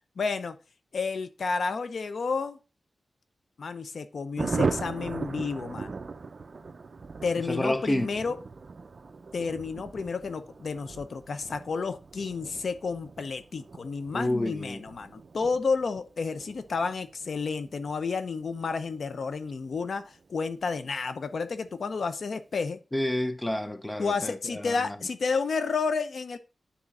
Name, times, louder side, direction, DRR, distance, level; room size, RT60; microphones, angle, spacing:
voice 1, 0.2-0.6 0.9-2.6 3.6-6.0 7.2-8.4 9.3-22.8 24.0-26.4, left 4 dB, 65° left, 0.7 m, -31 dB
Thunder, 4.4-20.5 20.8-20.9 21.2-21.3 21.6-22.0, right 4 dB, 50° right, 0.6 m, -38 dB
voice 2, 7.4-8.1 14.1-14.8 22.9-25.0, left 1 dB, 15° left, 0.7 m, -29 dB
9.8 x 3.7 x 4.2 m
wide cardioid pair, 110°, 0 cm